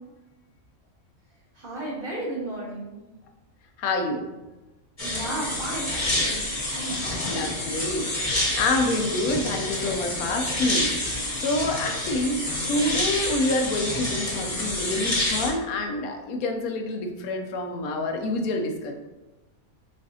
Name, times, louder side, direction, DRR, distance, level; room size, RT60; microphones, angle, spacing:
voice 1, 1.5-3.0 5.0-7.6, right 1 dB, 35° right, -8 dB, 1.7 m, -34 dB
voice 2, 3.8-4.2 6.9-12.4 12.7-18.9, left 2 dB, 85° left, 4 dB, 1.1 m, -27 dB
sound 1, 5.0-15.5, left 1 dB, 30° left, 1.0 m, -28 dB
5.4 x 3.4 x 2.7 m, 1.1 s
omnidirectional pair, 1.5 m